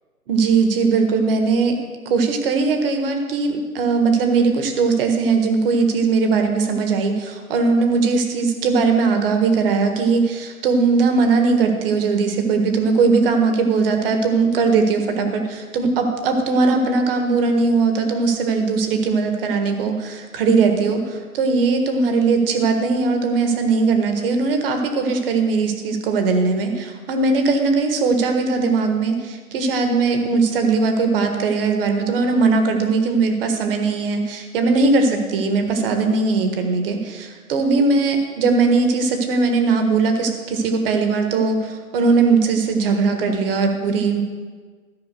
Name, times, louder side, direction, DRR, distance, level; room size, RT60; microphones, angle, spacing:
voice 1, 0.3-1.8 2.1-21.0 21.3-44.2, right 4 dB, 40° right, 5 dB, 1.6 m, -19 dB
13.5 x 5.6 x 6.7 m, 1.5 s
hypercardioid pair, 140°, 44 cm